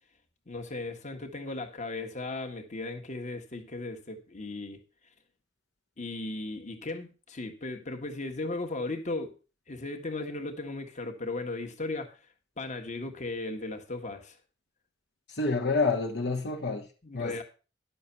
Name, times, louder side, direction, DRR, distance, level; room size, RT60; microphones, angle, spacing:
voice 1, 0.5-4.8 6.0-9.3 9.7-12.2 12.6-14.4 17.0-17.4, left 2 dB, 40° left, 1.6 m, -36 dB
voice 2, 15.3-16.9 17.1-17.4, left 3 dB, 60° left, 1.3 m, -28 dB
11.0 x 7.0 x 5.8 m
head